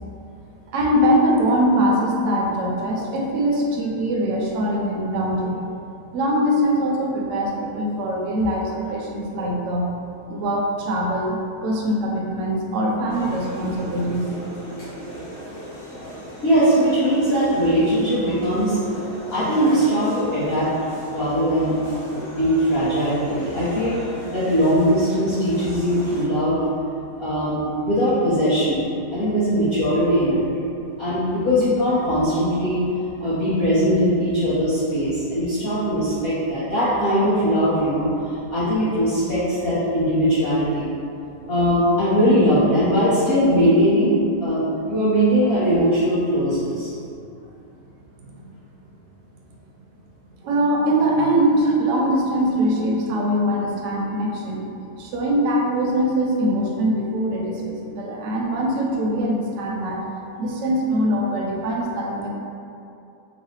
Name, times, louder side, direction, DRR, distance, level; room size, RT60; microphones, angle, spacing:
voice 1, 0.7-5.6 6.1-9.9 10.3-14.3 33.2-33.3 48.4-48.5 50.4-54.7 55.0-60.0 60.4-62.3, equal, 65° right, -2 dB, 0.8 m, -22 dB
sound 1, 13.1-26.2, equal, 80° left, 1.7 m, -37 dB
voice 2, 16.4-18.8 19.3-20.7 21.1-21.8 22.1-24.0 24.3-26.6 27.2-28.8 29.1-30.4 31.0-32.8 33.2-40.9 41.5-46.9, equal, 55° left, -12 dB, 0.7 m, -20 dB
3.9 x 2.0 x 3.1 m, 2.7 s
omnidirectional pair, 1.7 m